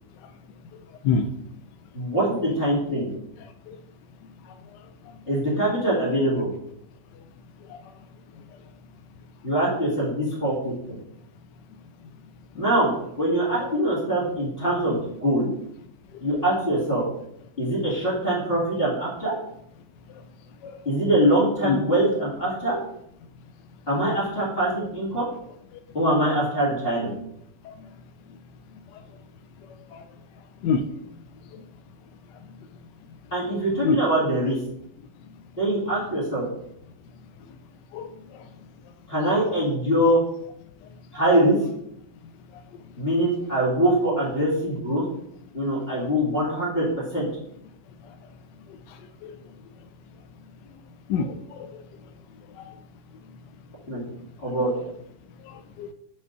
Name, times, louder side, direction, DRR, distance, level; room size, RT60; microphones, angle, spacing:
voice 1, 1.9-3.1 5.3-6.5 9.4-10.7 12.5-12.9 13.2-15.5 16.2-17.0 17.6-19.3 20.8-22.8 23.9-25.3 25.9-27.1 33.3-34.6 35.6-36.5 39.1-40.2 41.1-41.6 43.0-45.0 45.5-46.8 47.1-47.3 53.9-54.0 54.4-54.7, right 1 dB, 30° left, -8 dB, 2.7 m, -23 dB
voice 2, 51.1-51.7 55.5-55.9, left 5 dB, 75° left, 9 dB, 1.2 m, -26 dB
5.5 x 5.3 x 6.6 m, 0.75 s
omnidirectional pair, 1.9 m